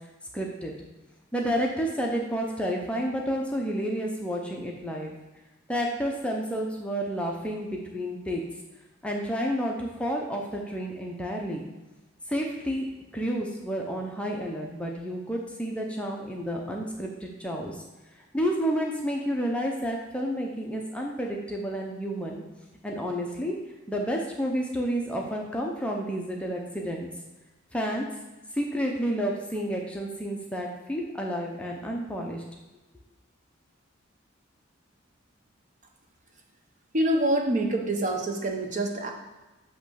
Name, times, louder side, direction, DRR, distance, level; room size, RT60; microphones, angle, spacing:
voice 1, 0.3-0.7 1.3-5.1 5.7-8.4 9.0-11.7 12.3-12.9 13.1-17.8 18.3-22.4 22.8-23.5 23.9-27.1 27.7-28.1 28.5-32.4, equal, 5° left, 0 dB, 0.7 m, -30 dB
voice 2, 36.9-39.1, right 1 dB, 40° right, 2 dB, 0.9 m, -26 dB
7.9 x 3.1 x 6.3 m, 1.1 s
head